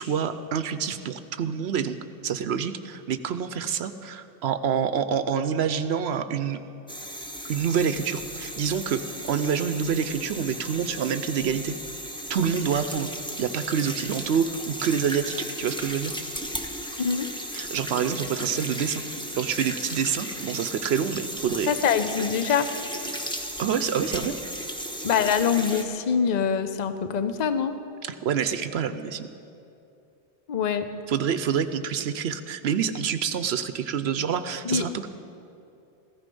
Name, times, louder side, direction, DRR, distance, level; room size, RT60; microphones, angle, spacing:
voice 1, 0.0-2.0 2.2-6.6 7.5-11.7 12.3-13.1 13.4-16.1 17.5-19.0 19.4-21.7 23.6-24.4 28.0-29.3 31.1-35.1, right 7 dB, 70° right, 11 dB, 0.8 m, -27 dB
sound 1, 6.9-25.8, equal, 5° left, 1.0 m, -35 dB
voice 2, 21.7-22.7 25.0-27.7 30.5-30.8 34.6-34.9, left 7 dB, 45° left, 10 dB, 0.7 m, -24 dB
15.5 x 15.0 x 5.4 m, 2.7 s
omnidirectional pair, 1.2 m